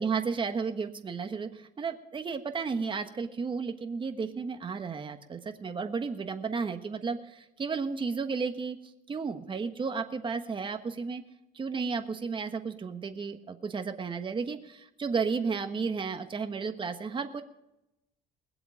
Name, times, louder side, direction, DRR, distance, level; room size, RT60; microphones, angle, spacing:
voice 1, 0.0-8.8 9.1-11.2 11.5-17.4, right 5 dB, 30° right, 7 dB, 1.3 m, -33 dB
20.5 x 7.8 x 5.1 m, 0.88 s
cardioid pair, 110°, 17 cm